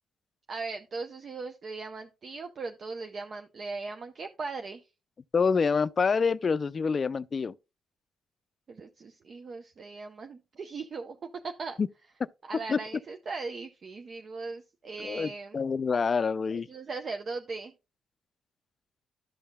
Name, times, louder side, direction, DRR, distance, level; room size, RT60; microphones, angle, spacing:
voice 1, 0.5-4.8 8.7-11.8 12.4-15.6 16.5-17.7, right 4 dB, 45° right, 0.6 m, -39 dB
voice 2, 5.3-7.5 11.8-11.9 12.7-12.8 15.0-16.7, left 5 dB, 40° left, 0.4 m, -26 dB
12.5 x 5.5 x 2.2 m
cardioid pair, 90°, 0 cm